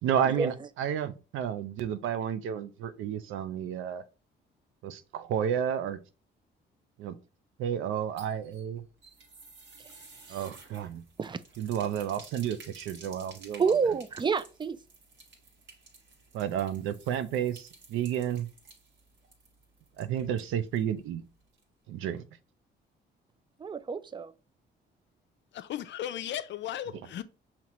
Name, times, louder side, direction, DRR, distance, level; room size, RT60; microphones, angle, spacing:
voice 1, 0.0-4.0 4.8-6.0 7.0-7.2 7.6-8.8 10.3-11.0 11.6-13.7 16.3-18.5 20.0-21.2 21.9-22.2, right 9 dB, 85° right, 0.5 m, -31 dB
sound 1, 7.9-20.9 21.2-21.3 21.6-21.7, right 3 dB, 65° right, 1.5 m, -53 dB
voice 2, 13.6-14.8 23.6-24.3, right 5 dB, 25° right, 0.4 m, -28 dB
voice 3, 25.5-27.2, left 11 dB, 65° left, 0.5 m, -36 dB
5.8 x 2.9 x 3.0 m
cardioid pair, 90°, 20 cm